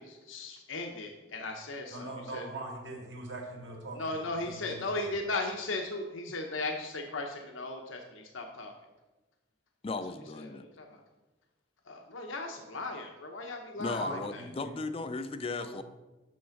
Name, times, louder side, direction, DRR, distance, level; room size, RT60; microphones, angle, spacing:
voice 1, 0.0-2.5 3.9-8.7 10.3-11.0 11.9-14.4, left 2 dB, 85° left, 2 dB, 0.9 m, -37 dB
voice 2, 1.9-5.1 13.8-14.7 15.6-15.8, right 2 dB, 65° right, 0 dB, 2.0 m, -42 dB
voice 3, 9.8-10.6 13.8-15.8, left 3 dB, 30° left, 11 dB, 0.4 m, -36 dB
6.6 x 6.2 x 5.8 m, 1.1 s
head